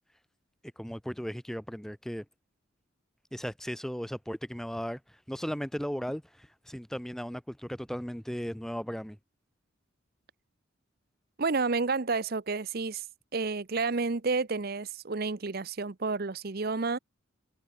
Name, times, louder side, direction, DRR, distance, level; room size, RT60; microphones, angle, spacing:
voice 1, 0.8-2.2 3.3-5.0 5.3-9.2, equal, ahead, 0.8 m, -36 dB
voice 2, 11.4-13.0 13.3-17.0, right 4 dB, 50° right, 0.8 m, -30 dB
head